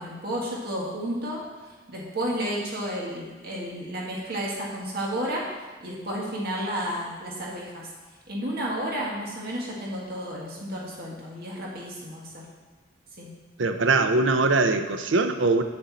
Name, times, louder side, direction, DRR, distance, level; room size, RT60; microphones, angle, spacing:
voice 1, 0.0-1.4 1.9-5.4 5.8-7.9 8.3-12.5 13.2-13.3, equal, 50° right, -4 dB, 1.8 m, -32 dB
voice 2, 13.6-15.6, right 3 dB, 70° right, 8 dB, 0.6 m, -22 dB
9.3 x 6.8 x 4.2 m, 1.3 s
head